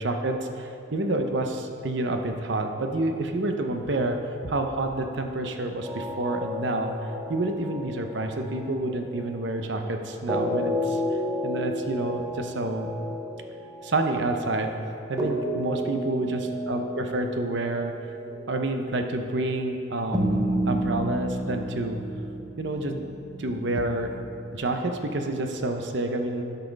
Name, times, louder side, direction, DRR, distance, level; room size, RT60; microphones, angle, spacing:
voice 1, 0.0-4.2 4.4-6.9 7.3-11.0 11.4-12.9 13.8-14.7 15.1-17.9 18.5-22.0 22.6-23.1 23.4-24.1 24.5-26.4, right 2 dB, 55° right, 5 dB, 0.7 m, -28 dB
sound 1, 5.8-9.5 10.3-19.2 20.1-24.8, equal, 20° right, 0.8 m, -32 dB
12.0 x 5.6 x 5.2 m, 2.7 s
head